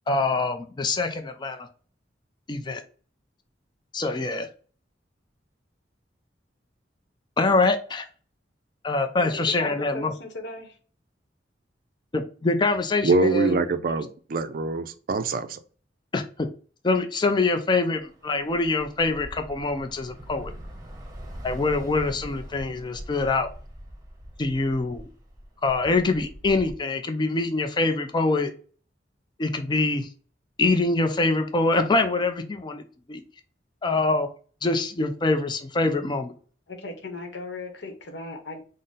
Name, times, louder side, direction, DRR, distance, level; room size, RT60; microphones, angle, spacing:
voice 1, 0.1-1.6 2.5-2.8 3.9-4.5 7.4-8.0 8.8-10.1 12.1-13.6 16.1-16.5 16.8-20.5 21.4-23.5 24.4-25.1 25.6-28.5 29.4-30.1 30.6-32.8 33.1-33.2 33.8-34.3 34.6-36.3, left 3 dB, 25° left, 0.4 m, -24 dB
voice 2, 9.1-10.8 36.7-38.6, left 2 dB, 70° left, 0.9 m, -37 dB
voice 3, 13.0-15.6, right 3 dB, 50° right, 0.4 m, -24 dB
Bus / Traffic noise roadway noise, 17.9-26.7, equal, 20° right, 0.9 m, -42 dB
3.7 x 2.0 x 3.9 m
head